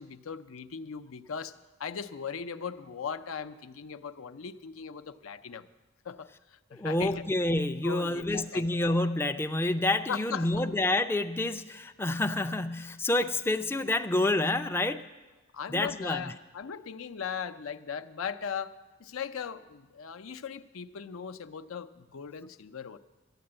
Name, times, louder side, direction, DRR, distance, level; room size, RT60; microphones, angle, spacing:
voice 1, 0.0-1.5 1.8-5.7 6.0-6.3 6.7-7.2 7.8-8.7 10.1-10.6 15.5-23.0, left 6 dB, 85° left, 10 dB, 0.6 m, -38 dB
voice 2, 6.7-15.0 15.7-16.3, left 2 dB, 10° left, 7 dB, 0.3 m, -28 dB
12.5 x 9.5 x 8.8 m, 1.2 s
head